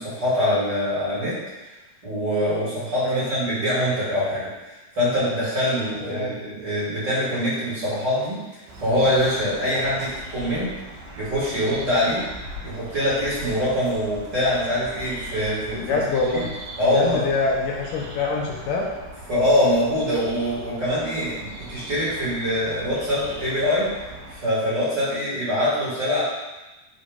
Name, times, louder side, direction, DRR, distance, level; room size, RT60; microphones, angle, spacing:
voice 1, 0.0-1.4 2.0-10.7 11.2-12.2 12.6-15.9 16.3-16.4 16.8-17.2 19.3-23.9 24.3-26.2, left 1 dB, 30° right, -10 dB, 2.8 m, -24 dB
voice 2, 6.0-6.4 15.7-16.5 16.8-18.9, left 3 dB, 75° left, -1 dB, 2.2 m, -25 dB
sound 1, 8.7-24.3, right 1 dB, 75° right, 3.3 m, -40 dB
8.4 x 3.7 x 5.2 m, 1.1 s
omnidirectional pair, 4.5 m